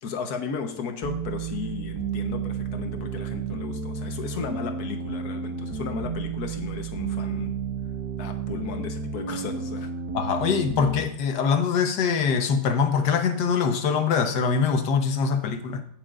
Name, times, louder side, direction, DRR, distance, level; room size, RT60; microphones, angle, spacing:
voice 1, 0.0-7.5 8.2-9.9, left 6 dB, 70° left, 6 dB, 1.5 m, -35 dB
sound 1, 1.0-11.0, right 6 dB, 70° right, 1.6 m, -32 dB
voice 2, 10.1-15.8, left 6 dB, 85° left, 7 dB, 1.6 m, -23 dB
16.0 x 6.6 x 2.5 m, 0.69 s
omnidirectional pair, 1.8 m